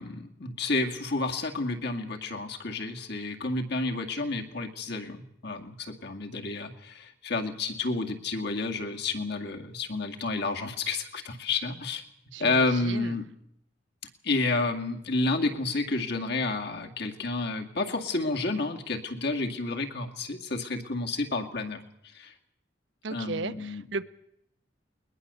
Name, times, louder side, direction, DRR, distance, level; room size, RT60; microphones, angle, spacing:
voice 1, 0.0-12.0 12.4-13.2 14.2-21.8 22.1-22.3 23.1-23.8, left 3 dB, 65° left, 3 dB, 2.2 m, -30 dB
voice 2, 12.3-13.2 23.0-24.1, right 3 dB, 80° right, 11 dB, 1.0 m, -35 dB
20.5 x 20.5 x 6.9 m, 0.79 s
head